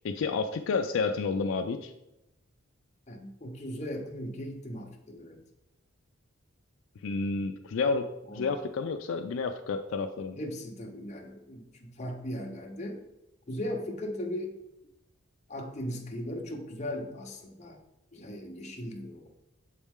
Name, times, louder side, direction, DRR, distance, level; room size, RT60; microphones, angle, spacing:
voice 1, 0.0-1.9 7.0-8.1 8.3-10.4, left 4 dB, 70° left, 6 dB, 0.4 m, -30 dB
voice 2, 3.1-5.4 8.3-8.5 10.4-13.0 13.5-14.6 15.5-17.8 18.1-19.3, left 1 dB, 35° left, 2 dB, 0.8 m, -38 dB
7.1 x 4.2 x 3.6 m, 0.91 s
head